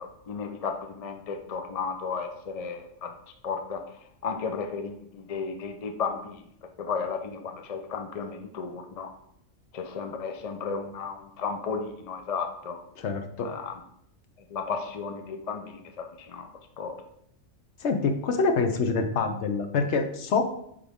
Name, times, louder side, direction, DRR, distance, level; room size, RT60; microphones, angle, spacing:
voice 1, 0.0-3.1 3.4-3.8 4.2-6.4 6.8-9.1 9.7-12.8 13.4-13.7 14.5-16.5 16.8-17.0, left 5 dB, 45° left, 5 dB, 0.5 m, -34 dB
voice 2, 13.0-13.5 17.8-20.4, left 4 dB, 65° left, 6 dB, 1.0 m, -26 dB
8.6 x 3.7 x 3.5 m, 0.73 s
omnidirectional pair, 1.3 m